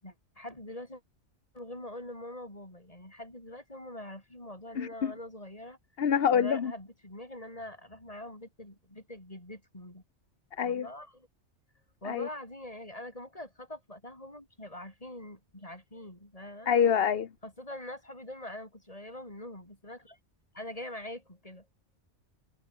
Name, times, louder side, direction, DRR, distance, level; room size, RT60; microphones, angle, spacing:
voice 1, 0.0-1.0 1.5-5.8 6.3-10.0 10.6-11.3 12.0-16.7 17.4-20.2 20.5-21.7, left 1 dB, 30° left, 6.1 m, -44 dB
voice 2, 4.8-5.1 6.0-6.7 10.6-10.9 12.0-12.3 16.7-17.3, left 8 dB, 55° left, 1.2 m, -26 dB
omnidirectional pair, 1.2 m